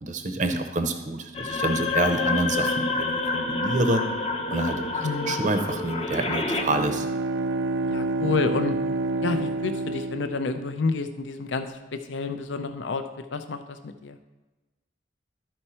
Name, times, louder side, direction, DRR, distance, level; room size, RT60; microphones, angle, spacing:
voice 1, 0.0-4.0 4.5-7.1, right 2 dB, 40° right, 6 dB, 0.6 m, -27 dB
sound 1, 1.3-6.6, left 3 dB, 30° left, 0.7 m, -28 dB
voice 2, 5.0-5.5 7.9-8.8 9.2-14.2, left 4 dB, 70° left, 8 dB, 0.5 m, -29 dB
Bowed string instrument, 6.4-11.0, right 2 dB, 80° right, 0.4 m, -29 dB
12.5 x 4.4 x 4.3 m, 1.1 s
head